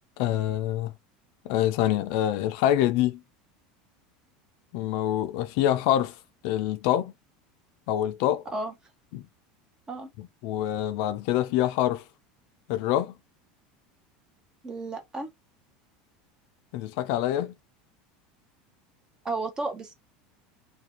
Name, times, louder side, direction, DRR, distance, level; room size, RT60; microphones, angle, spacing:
voice 1, 0.2-0.9 1.4-3.2 4.7-6.2 6.4-7.1 7.9-8.5 9.1-9.2 10.2-12.0 12.7-13.2 16.7-17.5, left 12 dB, 65° left, 0.4 m, -26 dB
voice 2, 14.6-15.3 19.2-19.9, right 3 dB, 20° right, 0.7 m, -32 dB
2.5 x 2.3 x 2.9 m
supercardioid pair, 145°, 4 cm